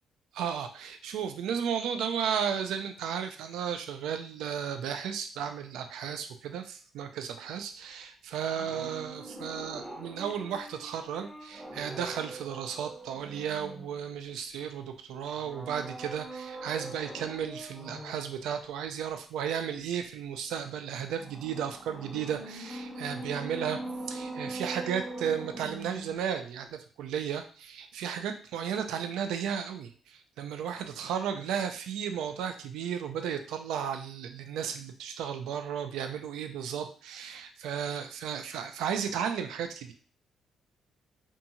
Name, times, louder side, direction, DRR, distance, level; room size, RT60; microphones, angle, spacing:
voice 1, 0.3-23.8 24.1-39.9, right 8 dB, 85° right, 7 dB, 0.3 m, -34 dB
sound 1, 8.6-14.3 15.4-18.4 21.2-26.4 26.6-26.7, right 1 dB, 15° right, 0.6 m, -42 dB
2.6 x 2.3 x 2.8 m, 0.41 s
cardioid pair, 90°, 0 cm